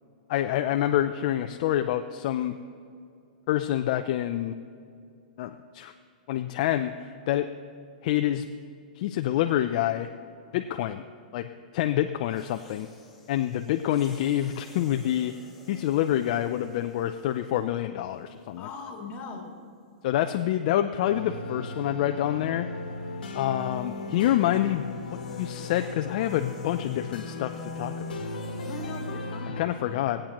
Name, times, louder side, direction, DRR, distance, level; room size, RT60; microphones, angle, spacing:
voice 1, 0.3-2.6 3.5-4.6 5.4-5.9 6.3-7.5 8.0-8.5 9.0-10.1 10.5-11.1 11.3-11.5 11.7-12.9 13.3-15.4 15.7-18.7 20.0-22.7 23.3-28.1 29.6-30.2, left 12 dB, 50° left, 7 dB, 0.4 m, -27 dB
sound 1, 12.2-17.8 18.6-18.8 22.7-29.4, left 2 dB, ahead, 1.7 m, -55 dB
voice 2, 18.6-19.5 28.6-30.0, left 4 dB, 30° left, 1 dB, 1.8 m, -40 dB
sound 2, 21.1-29.6, left 2 dB, 90° left, 1.2 m, -37 dB
18.5 x 8.7 x 3.0 m, 2.4 s
hypercardioid pair, 145°, 5 cm